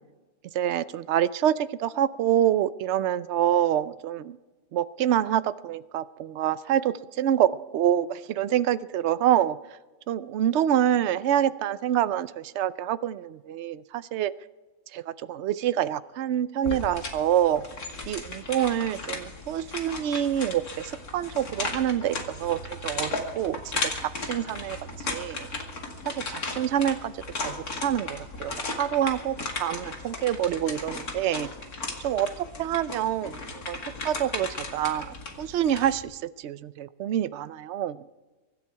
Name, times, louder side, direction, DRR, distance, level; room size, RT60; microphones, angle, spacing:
voice 1, 0.5-4.4 4.7-9.6 10.1-14.3 14.9-17.6 18.1-25.5 26.0-27.1 27.4-27.6 27.8-31.5 32.0-33.8 34.0-38.0, right 10 dB, 65° right, 14 dB, 0.7 m, -26 dB
sound 1, 16.6-36.0, left 3 dB, 65° left, 2.6 m, -36 dB
24.0 x 11.5 x 4.7 m, 1.2 s
omnidirectional pair, 1.7 m